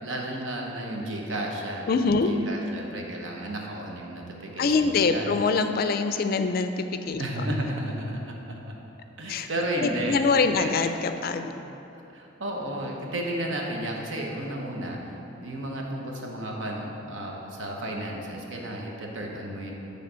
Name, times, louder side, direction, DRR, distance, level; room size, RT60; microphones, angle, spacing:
voice 1, 0.0-5.3 7.2-8.7 9.2-10.2 10.6-10.7 11.4-11.6 12.1-19.7, right 1 dB, 75° right, 0 dB, 1.0 m, -33 dB
voice 2, 1.9-2.3 4.6-7.4 9.3-9.5 9.8-11.5, left 4 dB, 50° left, 8 dB, 0.3 m, -24 dB
9.2 x 3.3 x 5.6 m, 3.0 s
head